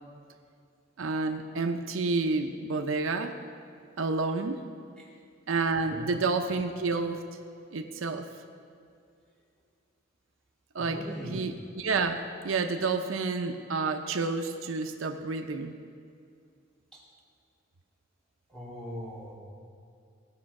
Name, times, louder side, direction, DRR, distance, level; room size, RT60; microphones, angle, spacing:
voice 1, 1.0-3.4 4.0-4.6 5.5-7.2 7.7-8.3 10.7-11.0 11.2-15.8, right 3 dB, 75° right, 5 dB, 0.6 m, -29 dB
voice 2, 5.7-6.1 10.8-11.5 16.9-17.0 18.5-19.3, equal, 5° left, -6 dB, 2.4 m, -40 dB
17.5 x 6.1 x 5.3 m, 2.4 s
head